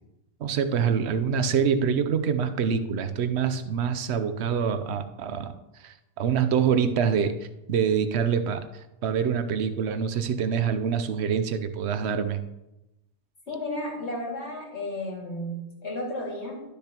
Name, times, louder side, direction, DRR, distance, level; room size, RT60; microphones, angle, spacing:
voice 1, 0.4-5.5 5.8-7.3 7.7-8.7 9.0-12.4, right 7 dB, 70° right, 10 dB, 0.9 m, -25 dB
voice 2, 13.5-16.6, left 1 dB, 70° left, -2 dB, 2.5 m, -33 dB
12.0 x 6.8 x 2.9 m, 0.93 s
omnidirectional pair, 1.2 m